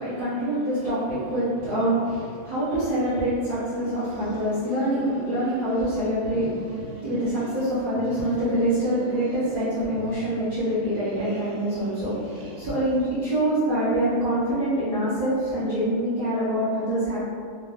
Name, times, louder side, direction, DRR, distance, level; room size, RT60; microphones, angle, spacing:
voice 1, 0.0-17.2, right 1 dB, 55° right, -14 dB, 0.5 m, -25 dB
sound 1, 3.9-5.9 6.2-7.7 7.9-9.7 9.9-13.1, right 2 dB, 70° right, 1.3 m, -42 dB
4.1 x 2.6 x 3.3 m, 2.2 s
omnidirectional pair, 2.3 m